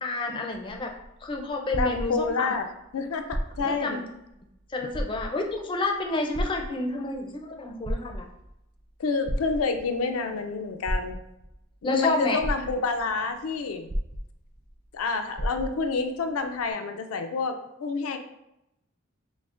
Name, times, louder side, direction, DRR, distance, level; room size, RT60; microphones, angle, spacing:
voice 1, 0.0-0.9 1.2-2.5 3.6-4.0 4.7-8.2 11.8-12.4, left 2 dB, 25° left, 2 dB, 0.4 m, -29 dB
sound 1, 0.5-2.6 3.2-3.9 4.3-4.4 4.9-5.6 6.3-7.2 7.7-8.5 9.3-10.0 10.8-11.5 12.1-12.2 12.4-13.1 13.9-14.7 15.0-15.1 15.4-16.0 16.7-16.8, equal, 30° right, 0.5 m, -32 dB
voice 2, 1.8-2.7 2.9-4.0 9.0-11.2 11.8-13.9 14.9-18.2, left 4 dB, 85° left, 7 dB, 0.4 m, -28 dB
6.0 x 2.1 x 2.4 m, 0.85 s
head